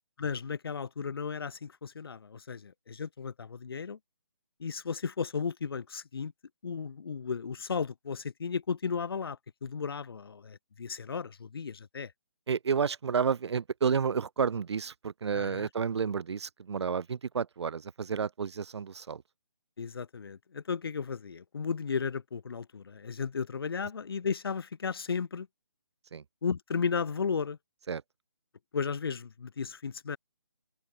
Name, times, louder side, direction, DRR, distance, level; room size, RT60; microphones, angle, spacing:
voice 1, 0.2-4.0 4.6-6.3 6.6-12.1 15.3-15.7 19.8-25.5 26.4-27.6 28.7-30.2, left 5 dB, 60° left, 2.4 m, -34 dB
voice 2, 12.5-19.2 26.1-26.2 27.9-28.0, right 6 dB, 75° right, 0.4 m, -31 dB
open air
figure-of-eight pair, 155°, 14 cm